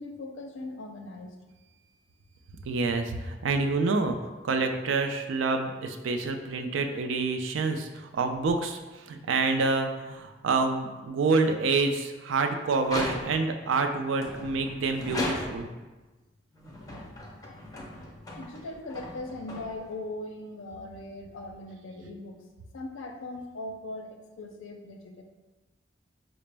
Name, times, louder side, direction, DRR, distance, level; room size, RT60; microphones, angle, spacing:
voice 1, 0.0-1.3 18.4-22.4 22.7-25.2, left 2 dB, 85° left, 4 dB, 0.5 m, -39 dB
voice 2, 2.7-15.7, right 3 dB, 75° right, 5 dB, 0.4 m, -27 dB
sound 1, 12.8-13.6 14.2-15.8 16.5-20.1, left 1 dB, 20° left, 0.5 m, -37 dB
4.9 x 2.0 x 3.3 m, 1.2 s
head